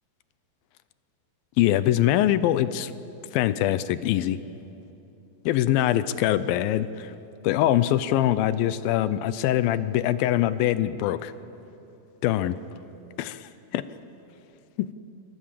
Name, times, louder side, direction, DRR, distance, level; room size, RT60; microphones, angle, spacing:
voice 1, 1.6-2.9 3.3-4.4 5.5-7.1 7.4-11.3 12.2-12.6 13.2-13.9, left 13 dB, 80° left, 14 dB, 2.3 m, -23 dB
24.5 x 24.5 x 7.5 m, 2.8 s
omnidirectional pair, 4.6 m